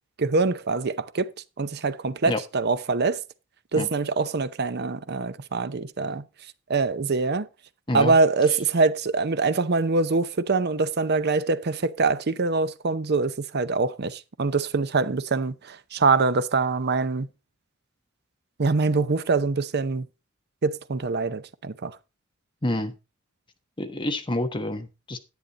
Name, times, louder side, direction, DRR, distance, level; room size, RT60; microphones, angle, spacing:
voice 1, 0.2-1.3 1.6-3.2 3.7-6.2 6.7-7.5 7.9-17.3 18.6-20.1 20.6-22.0, right 3 dB, 50° right, 0.7 m, -24 dB
voice 2, 22.6-22.9 23.8-25.2, left 1 dB, 25° left, 1.2 m, -28 dB
10.5 x 8.7 x 3.9 m
head